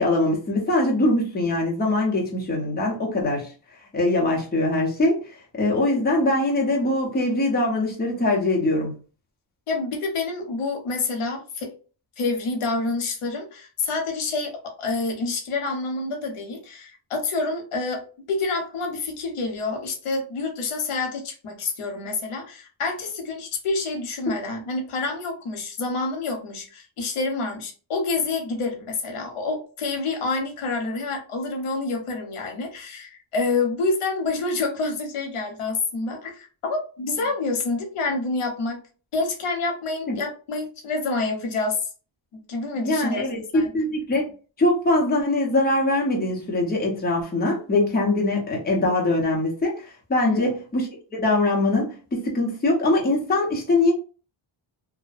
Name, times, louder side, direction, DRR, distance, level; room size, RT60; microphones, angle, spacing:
voice 1, 0.0-3.5 3.9-8.9 40.1-40.2 42.8-44.2 44.6-53.9, left 2 dB, 20° left, 0.7 m, -22 dB
voice 2, 9.7-11.7 12.2-38.8 39.1-41.8 42.5-43.2 43.5-43.7 50.2-50.4, left 3 dB, 80° left, 0.8 m, -28 dB
2.6 x 2.1 x 2.4 m
wide cardioid pair, 145°, 49 cm